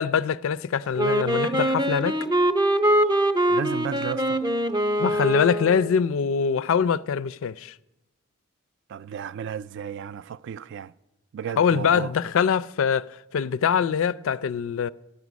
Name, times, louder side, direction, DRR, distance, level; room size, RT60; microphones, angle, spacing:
voice 1, 0.0-2.2 5.0-7.7 11.6-14.9, left 7 dB, 65° left, 0.4 m, -23 dB
Wind instrument woodwind instrument, 1.0-6.0, right 1 dB, 20° right, 0.6 m, -23 dB
voice 2, 3.5-4.4 8.9-10.9 11.3-12.1, right 8 dB, 55° right, 0.3 m, -33 dB
13.0 x 6.1 x 9.3 m
head